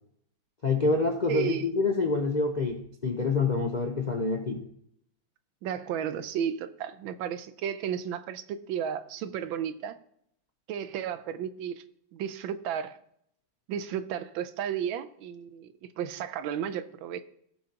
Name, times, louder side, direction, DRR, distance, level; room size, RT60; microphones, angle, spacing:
voice 1, 0.6-4.6, left 3 dB, 55° left, 2 dB, 0.4 m, -27 dB
voice 2, 1.3-1.7 5.6-10.0 10.7-11.8 12.1-13.0 13.7-17.2, right 9 dB, 90° right, 12 dB, 1.5 m, -33 dB
16.5 x 5.8 x 2.9 m, 0.70 s
omnidirectional pair, 2.1 m